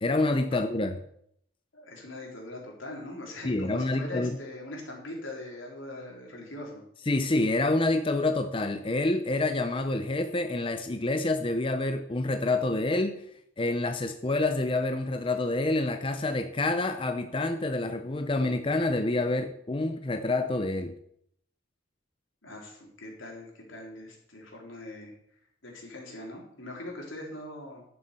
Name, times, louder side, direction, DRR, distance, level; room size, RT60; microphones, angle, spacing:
voice 1, 0.0-0.9 3.4-4.4 7.1-13.2 13.6-20.9, left 2 dB, 25° left, 7 dB, 0.6 m, -27 dB
voice 2, 1.7-6.8 22.4-25.1 25.6-27.8, left 1 dB, 80° left, -1 dB, 3.7 m, -41 dB
11.0 x 6.9 x 6.8 m, 0.72 s
head